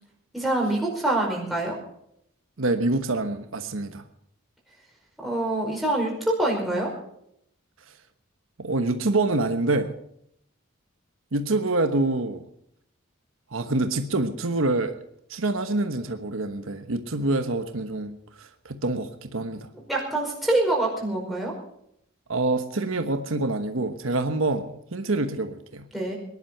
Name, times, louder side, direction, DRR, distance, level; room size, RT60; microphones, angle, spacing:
voice 1, 0.3-1.8 5.2-6.9 19.9-21.5 25.9-26.2, right 1 dB, ahead, 4.9 m, -25 dB
voice 2, 2.6-4.0 8.6-10.0 11.3-12.4 13.5-14.9 15.3-19.7 22.3-25.9, right 2 dB, 80° right, 1.2 m, -26 dB
21.0 x 11.0 x 5.8 m
head